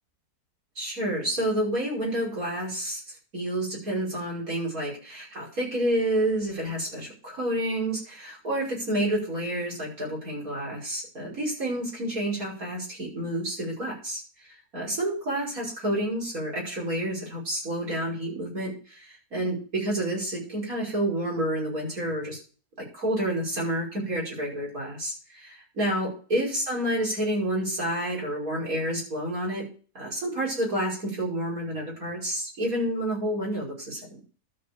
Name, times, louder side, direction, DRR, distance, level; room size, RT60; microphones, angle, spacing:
voice 1, 0.8-3.0 3.3-14.2 14.7-22.4 22.8-29.7 29.9-34.2, right 1 dB, 60° right, -5 dB, 6.0 m, -29 dB
12.5 x 5.0 x 6.8 m, 0.38 s
omnidirectional pair, 1.7 m